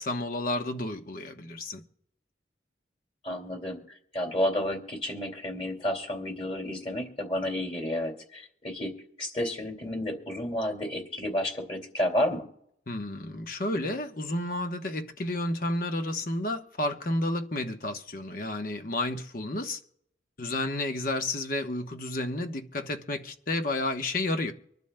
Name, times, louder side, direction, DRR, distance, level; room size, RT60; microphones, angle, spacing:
voice 1, 0.0-1.8 12.9-19.8 20.4-24.5, left 1 dB, 50° left, 1.0 m, -31 dB
voice 2, 3.2-3.8 4.1-8.9 9.2-12.5, left 1 dB, 30° left, 2.4 m, -31 dB
25.5 x 12.0 x 2.2 m
head